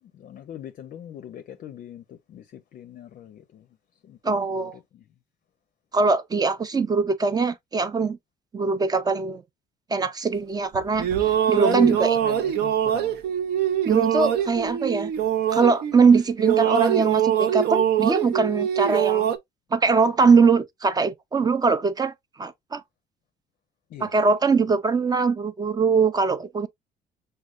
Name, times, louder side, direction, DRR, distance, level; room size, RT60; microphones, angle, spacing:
voice 1, 0.0-3.7 4.0-5.0 11.6-13.2 23.9-24.2, left 10 dB, 50° left, 0.5 m, -41 dB
voice 2, 4.2-4.7 5.9-8.2 8.5-9.4 9.9-12.2 13.9-15.1 15.5-19.3 19.7-22.1 22.4-22.8 24.0-26.7, right 4 dB, 25° right, 0.4 m, -22 dB
sound 1, 10.7-16.1 16.4-19.4, right 10 dB, 70° right, 0.6 m, -23 dB
6.3 x 2.2 x 2.3 m
cardioid pair, 110°, 17 cm